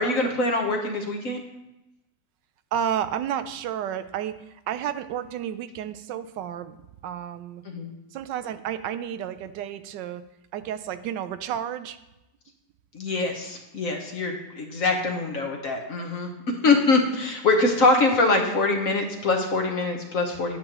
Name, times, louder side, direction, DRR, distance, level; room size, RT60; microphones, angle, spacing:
voice 1, 0.0-1.4 7.6-7.9 12.9-20.6, left 3 dB, 55° left, 2 dB, 1.3 m, -24 dB
voice 2, 2.7-6.8 7.0-7.6 8.1-10.2 10.5-12.0, right 9 dB, 80° right, 11 dB, 1.2 m, -31 dB
10.0 x 9.0 x 3.0 m, 0.96 s
omnidirectional pair, 1.9 m